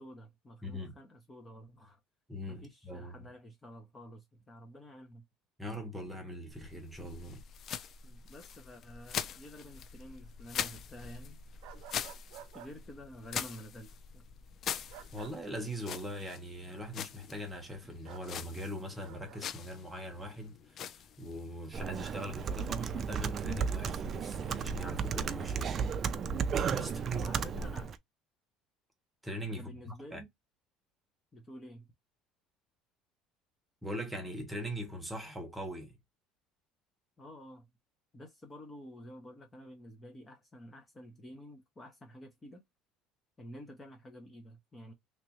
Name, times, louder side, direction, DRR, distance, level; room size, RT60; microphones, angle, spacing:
voice 1, 0.0-2.0 2.5-5.2 8.0-11.4 12.5-14.2 26.8-28.0 29.5-30.3 31.3-31.9 37.2-37.7 38.1-42.6 43.4-44.9, equal, 20° left, 0.9 m, -50 dB
voice 2, 0.6-0.9 2.3-3.3 5.6-7.4 11.7-11.8 15.1-20.6 21.2-25.9 26.7-27.3 29.2-30.2 33.8-36.0, equal, 5° right, 1.2 m, -41 dB
sound 1, 6.5-23.8, left 8 dB, 40° left, 0.4 m, -44 dB
sound 2, 11.6-12.7 14.9-15.3 18.0-18.3 19.0-19.4, right 12 dB, 75° right, 0.6 m, -51 dB
Computer keyboard, 21.7-28.0, right 6 dB, 35° right, 0.4 m, -34 dB
3.3 x 3.0 x 2.9 m
cardioid pair, 150°, 0 cm